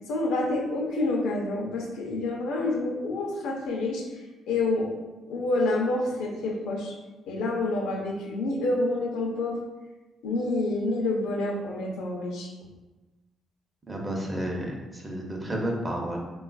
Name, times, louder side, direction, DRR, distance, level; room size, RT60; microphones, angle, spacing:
voice 1, 0.1-4.1 4.5-4.9 5.3-7.0 7.3-9.6 10.2-12.5, left 2 dB, 90° left, 0 dB, 0.5 m, -28 dB
voice 2, 13.9-16.2, right 1 dB, 25° right, 0 dB, 0.6 m, -31 dB
3.2 x 2.3 x 2.3 m, 1.1 s
cardioid pair, 90°, 0 cm